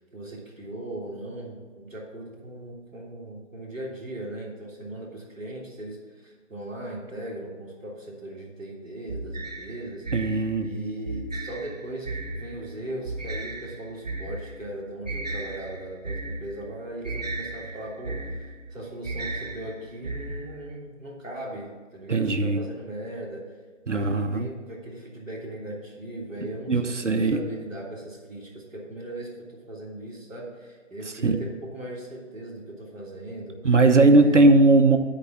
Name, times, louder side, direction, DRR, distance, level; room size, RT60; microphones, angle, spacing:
voice 1, 0.0-10.1 10.6-18.4 18.7-23.4 23.9-33.6 34.1-34.6, right 1 dB, 5° right, -15 dB, 1.0 m, -38 dB
sound 1, 9.1-20.8, right 2 dB, 35° right, 0.7 m, -35 dB
voice 2, 10.1-10.7 22.1-22.6 23.9-24.5 26.7-27.4 31.2-31.3 33.6-35.0, right 2 dB, 65° right, 6 dB, 0.9 m, -19 dB
10.0 x 4.8 x 7.1 m, 1.5 s
figure-of-eight pair, 160°, 38 cm